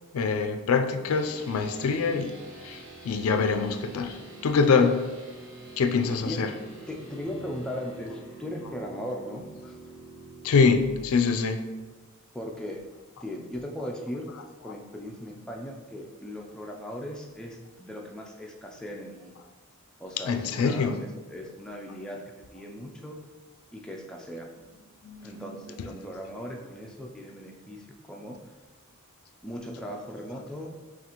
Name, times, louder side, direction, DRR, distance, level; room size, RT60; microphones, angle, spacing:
voice 1, 0.1-2.3 2.6-4.2 4.4-5.0 5.8-6.5 10.4-11.7 20.2-21.0 25.0-25.5, left 5 dB, 80° left, 6 dB, 0.4 m, -24 dB
sound 1, 1.1-10.9, right 3 dB, 60° right, 1.3 m, -46 dB
voice 2, 6.9-9.8 12.3-12.8 13.2-14.3 14.6-19.4 20.0-20.9 21.3-22.2 22.5-23.2 23.7-24.5 25.2-28.4 29.4-30.7, equal, 5° left, -1 dB, 0.3 m, -38 dB
5.8 x 2.4 x 2.9 m, 1.3 s
head